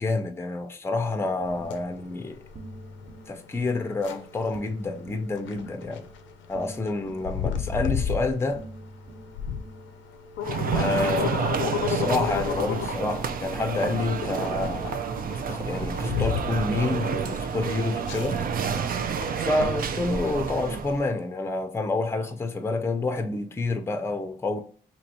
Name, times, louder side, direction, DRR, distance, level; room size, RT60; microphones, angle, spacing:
voice 1, 0.0-2.4 3.3-6.1 6.5-8.6 10.7-15.0 15.5-18.4 19.4-24.6, left 3 dB, 15° left, 0.5 m, -28 dB
sound 1, 1.1-19.2, right 1 dB, 25° right, 0.8 m, -46 dB
sound 2, 1.4-20.3, left 8 dB, 85° left, 0.5 m, -34 dB
sound 3, 10.4-21.1, right 7 dB, 50° right, 0.5 m, -29 dB
3.0 x 2.9 x 4.2 m
cardioid pair, 85°, 19 cm